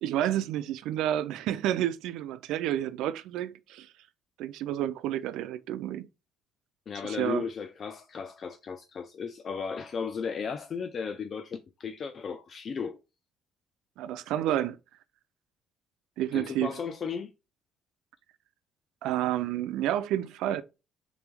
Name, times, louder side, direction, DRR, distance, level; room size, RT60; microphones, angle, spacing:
voice 1, 0.0-3.9 4.4-6.1 7.0-7.5 14.0-14.8 16.2-16.7 19.0-20.6, right 12 dB, 85° right, 0.3 m, -30 dB
voice 2, 6.9-13.0 16.3-17.3, left 6 dB, 40° left, 0.3 m, -35 dB
3.3 x 3.1 x 3.5 m
cardioid pair, 125°, 0 cm